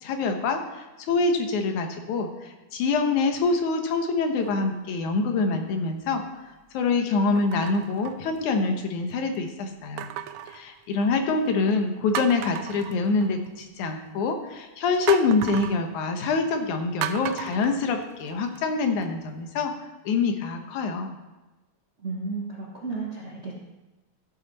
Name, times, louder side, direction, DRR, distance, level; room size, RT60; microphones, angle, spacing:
voice 1, 0.0-2.3 2.7-6.2 6.7-10.1 10.5-19.7 20.1-21.1, left 4 dB, 85° left, 5 dB, 2.5 m, -25 dB
sound 1, 4.4-4.9 5.6-5.7 7.4-8.8 10.0-11.3 11.7-11.8 12.1-13.6 15.1-15.8 17.0-18.6 19.0-19.1, right 11 dB, 85° right, 1.4 m, -35 dB
voice 2, 22.0-23.5, right 3 dB, 45° right, -3 dB, 0.9 m, -33 dB
14.0 x 8.3 x 4.1 m, 1.1 s
omnidirectional pair, 3.4 m